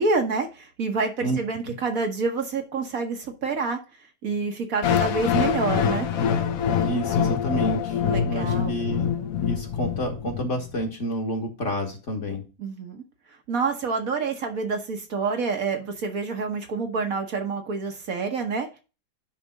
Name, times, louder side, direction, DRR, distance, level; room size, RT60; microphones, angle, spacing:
voice 1, 0.0-3.8 4.2-6.1 8.0-8.7 12.6-13.0 13.3-18.8, right 4 dB, 55° right, 4 dB, 1.5 m, -27 dB
sound 1, 4.8-10.8, left 8 dB, 60° left, 1.1 m, -25 dB
voice 2, 6.8-9.1 9.4-12.5, right 1 dB, 45° left, 2 dB, 1.9 m, -29 dB
10.0 x 3.4 x 5.1 m, 0.32 s
omnidirectional pair, 1.8 m